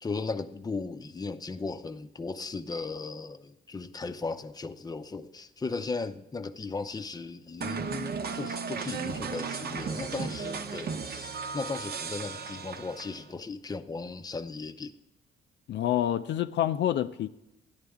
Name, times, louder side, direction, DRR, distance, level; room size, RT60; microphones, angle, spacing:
voice 1, 0.0-14.9, left 4 dB, 20° left, 0.6 m, -36 dB
sound 1, 7.6-13.3, right 5 dB, 55° right, 0.9 m, -35 dB
voice 2, 15.7-17.3, left 11 dB, 65° left, 0.4 m, -27 dB
13.0 x 10.5 x 3.6 m
cardioid pair, 90°, 20 cm